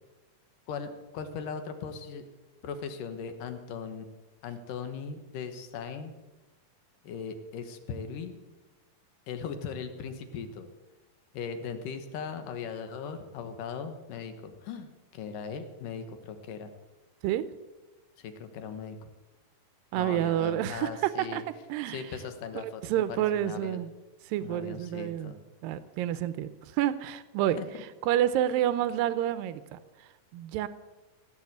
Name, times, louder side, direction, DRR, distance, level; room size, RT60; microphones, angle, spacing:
voice 1, 0.7-2.2 2.6-4.1 4.4-6.1 7.0-8.4 9.3-10.7 11.3-16.7 18.2-19.0 19.9-21.4 21.9-23.8 24.4-25.4 27.6-27.7, left 6 dB, 70° left, 8 dB, 2.8 m, -39 dB
voice 2, 19.9-21.4 21.7-22.0 22.8-23.9 24.3-25.3 25.6-27.6 28.0-30.7, right 12 dB, 85° right, 14 dB, 2.4 m, -29 dB
16.5 x 8.7 x 8.1 m, 1.2 s
omnidirectional pair, 4.1 m